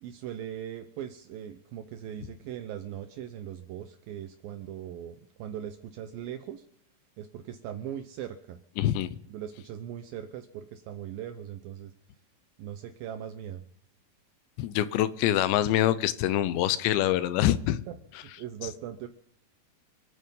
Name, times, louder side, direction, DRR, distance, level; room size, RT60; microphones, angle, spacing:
voice 1, 0.0-6.6 7.2-8.6 9.3-11.9 12.6-13.6 17.9-18.0 18.2-19.1, right 10 dB, 85° right, 8 dB, 2.0 m, -40 dB
voice 2, 8.8-9.1 14.6-17.8, left 12 dB, 80° left, 15 dB, 2.9 m, -25 dB
26.5 x 9.4 x 5.4 m, 0.69 s
omnidirectional pair, 5.3 m